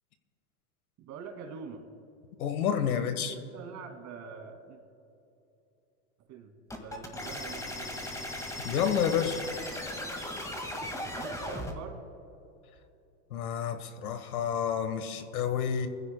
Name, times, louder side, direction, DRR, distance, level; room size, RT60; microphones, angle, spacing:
voice 1, 1.0-1.9 2.9-4.8 6.3-8.0 11.1-12.0, right 6 dB, 40° right, 4 dB, 2.3 m, -44 dB
voice 2, 2.4-3.3 8.6-9.4 13.3-15.9, left 8 dB, 80° left, 10 dB, 1.4 m, -29 dB
sound 1, 6.7-11.7, left 1 dB, 5° left, 1.8 m, -37 dB
24.0 x 15.0 x 2.2 m, 2.9 s
hypercardioid pair, 120°, 43 cm